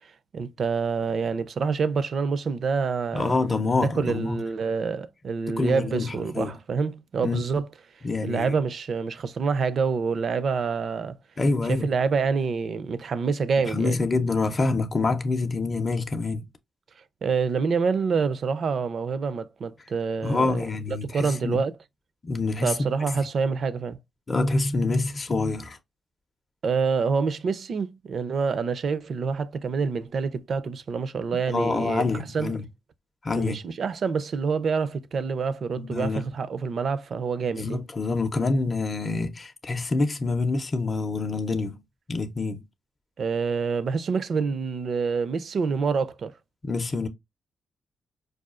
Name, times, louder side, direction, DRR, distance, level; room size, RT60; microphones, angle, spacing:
voice 1, 0.0-3.4 3.8-7.7 8.2-11.2 11.7-14.0 17.2-21.7 22.6-24.0 26.6-32.0 32.3-32.6 33.3-37.8 43.2-46.3, right 5 dB, 55° right, 0.4 m, -27 dB
voice 2, 3.1-4.4 5.6-6.5 7.2-7.4 8.0-8.5 11.4-11.9 13.7-16.5 20.2-21.6 22.3-22.8 23.2-23.3 24.3-25.8 31.5-32.6 33.2-33.6 35.8-36.2 37.5-41.8 42.1-42.6 46.6-47.1, left 3 dB, 30° left, 0.5 m, -26 dB
4.8 x 2.3 x 2.3 m
cardioid pair, 90°, 0 cm